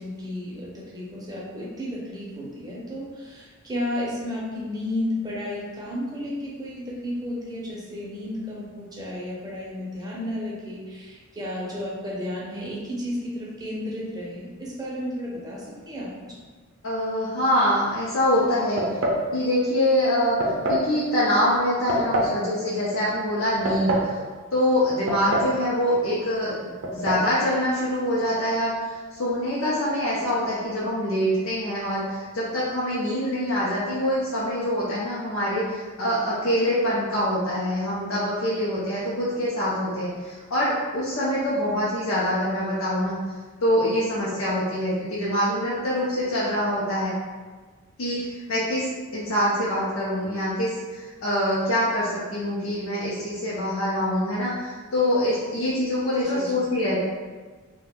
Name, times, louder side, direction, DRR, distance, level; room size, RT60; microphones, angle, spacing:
voice 1, 0.0-16.1 56.2-56.5, left 1 dB, 20° right, -6 dB, 0.7 m, -33 dB
voice 2, 16.8-18.8 19.3-20.4 20.7-24.1 24.5-43.2 43.6-47.1 48.0-48.2 48.5-57.0, equal, 70° left, -8 dB, 0.6 m, -25 dB
sound 1, 18.8-19.3 20.4-20.9 21.9-22.4 23.4-24.1 25.1-25.6 25.9-26.0 26.8-27.3, right 1 dB, 65° right, 0.5 m, -25 dB
2.5 x 2.2 x 3.5 m, 1.4 s
head